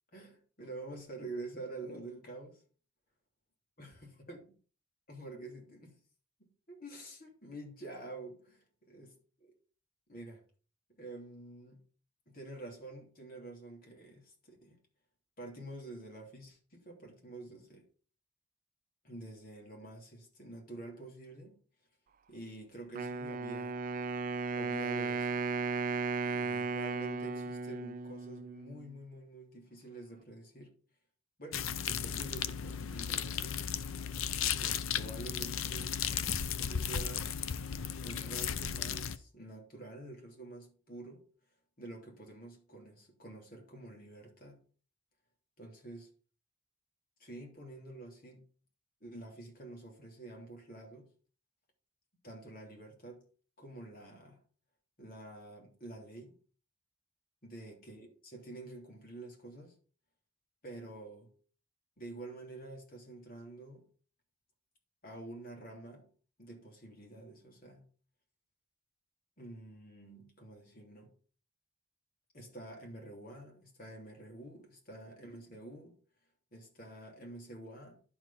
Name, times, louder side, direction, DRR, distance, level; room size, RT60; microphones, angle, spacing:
voice 1, 0.1-2.6 3.8-3.9 4.3-4.4 5.1-6.0 6.4-9.1 9.4-9.5 10.1-10.4 10.9-11.8 12.3-14.8 15.4-17.9 19.0-21.6 22.3-23.8 24.5-25.5 26.2-30.8 31.4-33.6 34.4-36.0 36.6-37.3 38.0-41.2 41.8-44.6 45.6-46.1 47.2-48.5 49.0-51.1 52.2-53.2 53.6-54.4 55.0-56.4 57.4-59.7 60.6-61.3 62.0-63.9 65.0-66.1 66.4-67.9 69.4-71.1 72.3-76.0 76.5-78.0, right 2 dB, 45° left, 3.1 m, -48 dB
Wind instrument woodwind instrument, 22.9-28.9, right 4 dB, 40° right, 0.5 m, -35 dB
sound 1, 31.5-39.2, left 8 dB, 90° left, 0.7 m, -35 dB
11.0 x 4.9 x 5.7 m
head